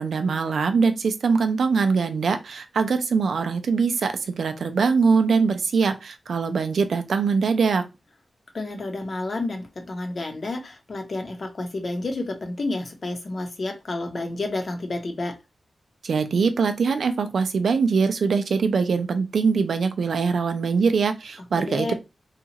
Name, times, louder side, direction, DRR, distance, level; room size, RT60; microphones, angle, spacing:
voice 1, 0.0-7.8 16.0-21.9, right 5 dB, 85° right, 0.4 m, -22 dB
voice 2, 8.5-15.4 21.6-21.9, left 2 dB, 55° left, 0.8 m, -30 dB
2.9 x 2.4 x 2.8 m
wide cardioid pair, 75°, 0 cm